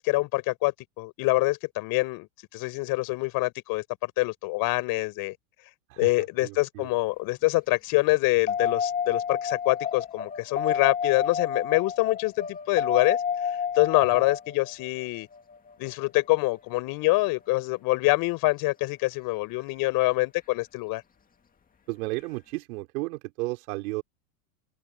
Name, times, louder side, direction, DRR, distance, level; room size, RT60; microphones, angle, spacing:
voice 1, 0.0-2.3 2.5-5.3 6.0-13.2 13.7-15.3 15.8-21.0, left 22 dB, 50° left, 4.9 m, -25 dB
voice 2, 5.9-6.9 14.1-14.2 21.9-24.0, right 24 dB, 65° right, 4.5 m, -34 dB
sound 1, 8.5-16.9 19.5-19.6, left 7 dB, 20° left, 2.3 m, -30 dB
supercardioid pair, 120°, 46 cm